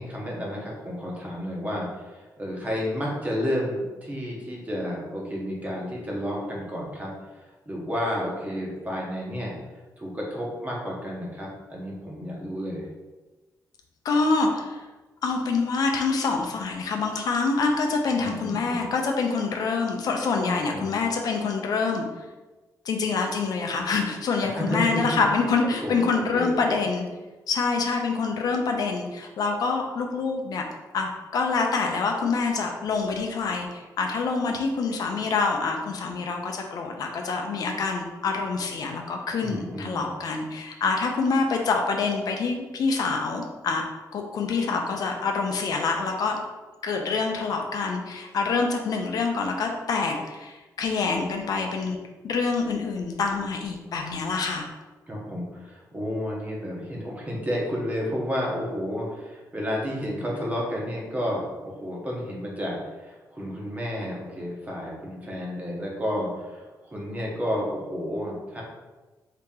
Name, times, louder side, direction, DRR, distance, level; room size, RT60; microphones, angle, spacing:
voice 1, 0.0-9.5 10.0-12.9 18.2-18.8 20.3-21.1 24.5-25.2 25.8-26.8 39.4-40.1 55.1-68.6, equal, 20° right, -3 dB, 0.9 m, -31 dB
voice 2, 14.0-14.8 15.2-22.1 22.8-27.0 27.5-30.6 30.9-43.8 44.1-46.4 46.8-52.0 52.2-54.7, left 4 dB, 65° left, 2 dB, 0.5 m, -26 dB
2.9 x 2.8 x 3.6 m, 1.2 s
wide cardioid pair, 125°, 7 cm